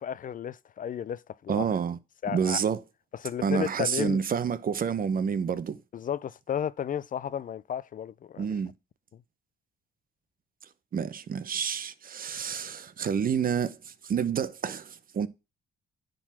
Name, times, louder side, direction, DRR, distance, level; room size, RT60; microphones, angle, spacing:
voice 1, 0.0-1.7 2.2-2.6 3.1-4.2 5.9-8.5, left 9 dB, 45° left, 0.4 m, -33 dB
voice 2, 1.5-2.0 2.3-2.8 3.4-5.8 8.4-8.7 10.9-15.3, right 7 dB, 45° right, 0.8 m, -29 dB
10.0 x 3.9 x 6.0 m
cardioid pair, 90°, 20 cm